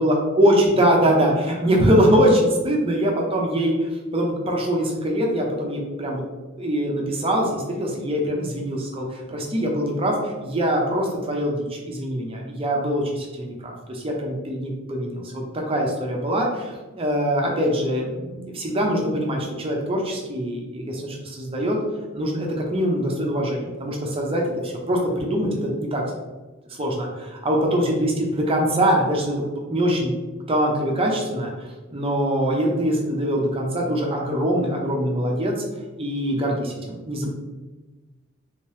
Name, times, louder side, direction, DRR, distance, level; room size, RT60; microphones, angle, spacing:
voice 1, 0.0-6.2 6.6-21.8 22.1-26.0 26.7-29.4 29.7-30.1 30.5-35.6 36.0-37.3, equal, 25° right, 0 dB, 0.6 m, -23 dB
3.5 x 2.9 x 3.2 m, 1.2 s
head